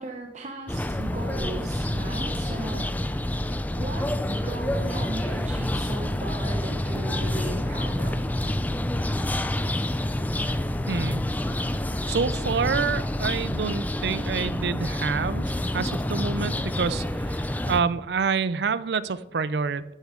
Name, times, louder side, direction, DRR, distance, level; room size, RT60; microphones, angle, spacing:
voice 1, 0.0-2.9 3.8-8.3, right 2 dB, 40° right, 2 dB, 0.8 m, -37 dB
sound 1, 0.7-17.8, left 1 dB, 10° left, 0.4 m, -28 dB
voice 2, 10.9-11.3 12.1-19.8, right 5 dB, 65° right, 17 dB, 0.5 m, -27 dB
12.5 x 8.5 x 3.7 m, 1.0 s
head